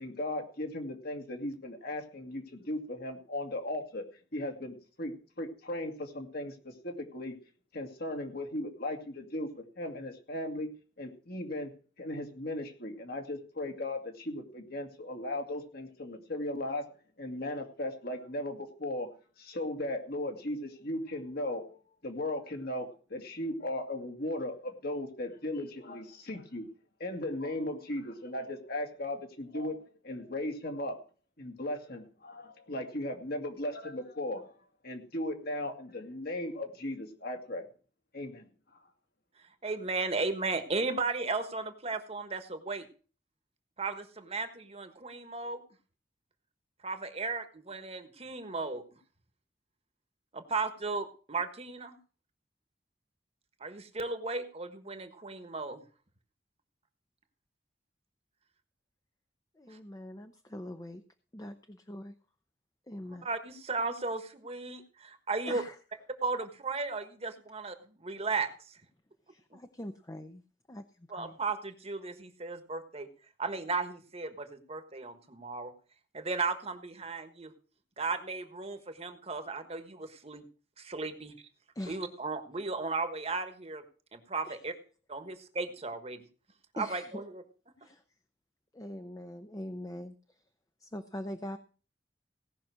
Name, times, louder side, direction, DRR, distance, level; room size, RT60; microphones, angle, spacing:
voice 1, 0.0-4.0 4.3-7.4 7.7-10.7 11.0-16.9 17.2-21.8 22.0-26.7 27.0-31.0 31.4-34.5 34.8-37.7 38.1-38.5, left 1 dB, 60° left, 4 dB, 2.2 m, -37 dB
voice 2, 39.6-42.9 43.8-45.6 46.8-48.8 50.3-52.0 53.6-55.8 63.1-65.6 66.2-68.7 71.1-73.1 73.4-75.7 76.1-77.5 78.0-80.4 80.8-81.3 81.9-83.8 84.1-84.7 85.1-86.2 86.7-87.4, right 3 dB, 35° right, 8 dB, 1.4 m, -35 dB
voice 3, 59.6-61.0 61.3-62.1 62.9-63.3 65.5-65.8 69.3-70.4 70.7-71.4 81.7-82.0 84.4-84.6 86.8-87.2 87.8-88.0 88.7-90.2 90.8-91.6, left 1 dB, 20° left, 8 dB, 0.7 m, -42 dB
17.5 x 5.9 x 6.2 m, 0.38 s
head